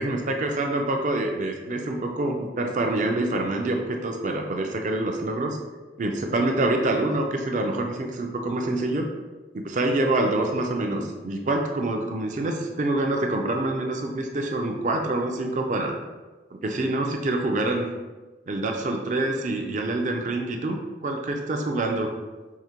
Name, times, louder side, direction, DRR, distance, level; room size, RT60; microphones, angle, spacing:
voice 1, 0.0-5.6 6.0-9.1 9.5-16.0 16.5-17.9 18.5-20.8 21.0-22.1, right 2 dB, 40° right, 3 dB, 0.4 m, -26 dB
4.7 x 2.1 x 2.8 m, 1.2 s
head